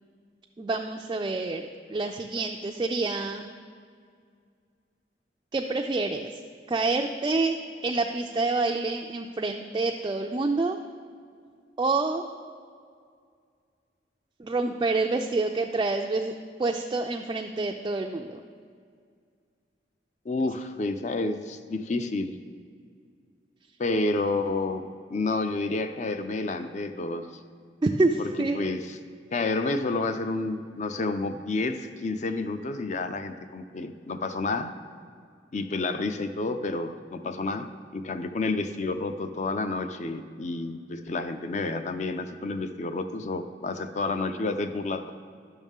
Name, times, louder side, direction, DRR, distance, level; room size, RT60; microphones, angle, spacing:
voice 1, 0.6-3.5 5.5-6.3 6.7-7.6 7.8-10.8 11.8-12.2 14.4-18.4 27.8-28.6, right 3 dB, 25° right, 2 dB, 0.3 m, -27 dB
voice 2, 20.3-22.4 23.8-27.3 28.2-29.0 29.3-34.7 35.5-45.1, left 3 dB, 45° left, 9 dB, 0.5 m, -30 dB
10.5 x 6.4 x 3.6 m, 2.1 s
head